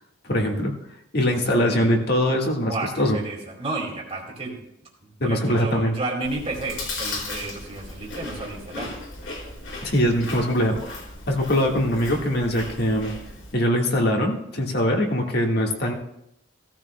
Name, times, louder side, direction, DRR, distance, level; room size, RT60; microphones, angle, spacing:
voice 1, 0.2-0.8 1.1-3.2 5.2-5.9 9.8-10.9 11.3-13.1 13.5-15.9, equal, 55° left, 1 dB, 1.6 m, -22 dB
voice 2, 1.5-1.9 2.7-4.7 5.2-8.9, right 2 dB, 30° right, 0 dB, 2.1 m, -32 dB
Chewing mastication, 6.2-13.5, left 2 dB, 85° left, 4.4 m, -36 dB
16.5 x 13.5 x 2.2 m, 0.80 s
head